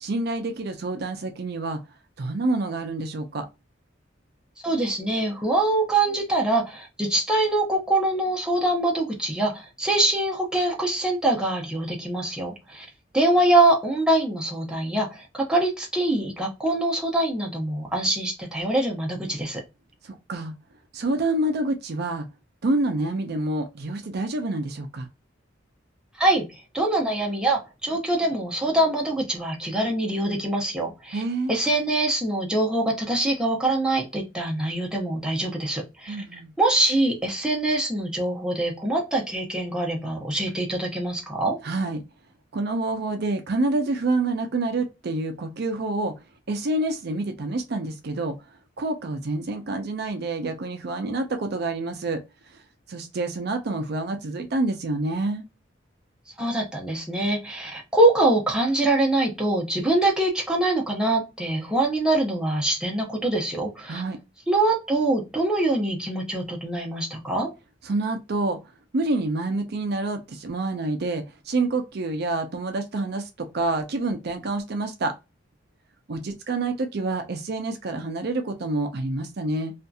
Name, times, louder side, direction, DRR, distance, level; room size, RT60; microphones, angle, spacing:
voice 1, 0.0-1.8 2.2-3.5 20.0-20.5 20.9-22.3 22.6-25.1 31.1-31.6 36.1-36.5 41.6-42.0 42.5-46.1 46.5-48.4 48.8-52.2 52.9-55.4 63.9-64.2 67.8-68.6 68.9-75.1 76.1-79.7, right 2 dB, 55° right, 0.5 m, -27 dB
voice 2, 4.6-12.9 13.1-19.6 26.2-26.4 26.7-31.2 31.5-36.2 36.6-41.6 56.4-64.0 64.5-67.5, right 2 dB, 5° right, 0.7 m, -24 dB
2.7 x 2.5 x 2.3 m
head